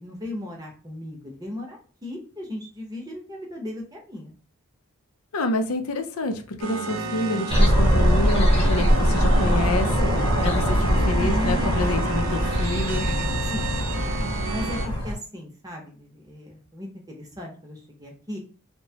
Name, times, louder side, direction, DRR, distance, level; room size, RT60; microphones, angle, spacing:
voice 1, 0.0-4.3 8.4-9.6 10.3-12.2 13.0-13.7 14.5-18.4, left 1 dB, 15° right, 0 dB, 0.7 m, -37 dB
voice 2, 5.3-10.1 10.4-13.1, left 2 dB, 85° left, 7 dB, 0.5 m, -28 dB
sound 1, 6.6-14.9, right 3 dB, 65° right, 0.5 m, -32 dB
sound 2, 7.5-15.1, equal, 25° left, 1.0 m, -22 dB
2.9 x 2.1 x 2.7 m, 0.39 s
head